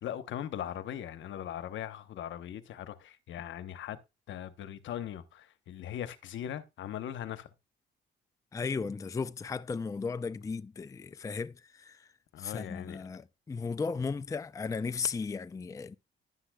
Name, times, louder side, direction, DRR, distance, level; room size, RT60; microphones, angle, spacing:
voice 1, 0.0-4.0 4.3-7.5 12.3-13.0, left 10 dB, 70° left, 0.9 m, -39 dB
voice 2, 8.5-12.1 12.4-15.9, left 5 dB, 15° left, 0.4 m, -35 dB
11.0 x 9.7 x 2.2 m
cardioid pair, 90°, 20 cm